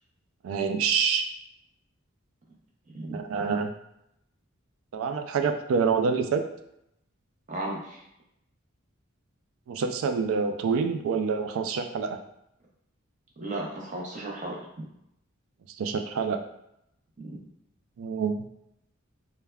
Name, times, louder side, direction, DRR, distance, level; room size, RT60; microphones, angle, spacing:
voice 1, 0.4-1.3 3.1-3.7 4.9-6.4 9.7-12.2 15.8-16.4 18.0-18.4, right 5 dB, 80° right, 6 dB, 0.3 m, -26 dB
voice 2, 7.5-8.0 13.4-14.6 17.2-17.4, right 2 dB, 35° right, -2 dB, 0.6 m, -34 dB
3.3 x 2.2 x 2.2 m, 0.80 s
head